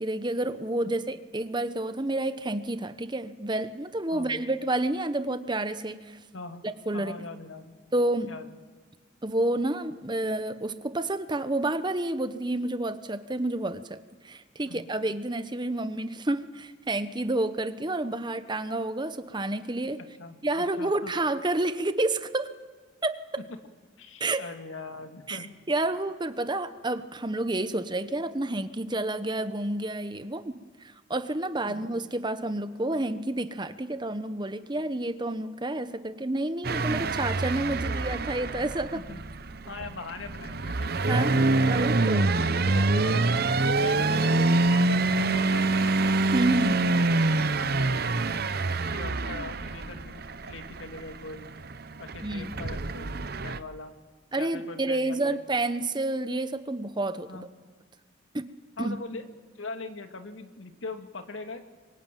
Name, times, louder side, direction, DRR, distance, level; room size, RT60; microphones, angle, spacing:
voice 1, 0.0-6.2 6.9-7.1 7.9-8.3 9.2-14.0 14.2-20.0 20.4-22.5 23.0-23.4 24.2-24.4 25.3-30.6 30.8-39.0 41.1-42.4 46.3-46.9 52.2-52.5 54.3-57.5 58.3-58.5 58.8-59.0, right 2 dB, 25° right, 11 dB, 1.0 m, -29 dB
voice 2, 4.1-4.4 6.3-6.7 6.9-7.8 8.3-8.6 14.7-14.9 20.0-21.1 24.0-25.6 31.7-31.9 38.9-39.2 39.7-41.5 42.6-43.4 43.6-45.9 46.7-48.2 48.7-51.5 52.0-53.9 54.4-55.4 57.3-57.5 58.8-59.3 59.6-61.6, left 3 dB, 80° left, 7 dB, 2.3 m, -41 dB
sound 1, 36.6-53.6, right 2 dB, 50° right, 0.9 m, -26 dB
27.5 x 23.5 x 9.2 m, 1.4 s
head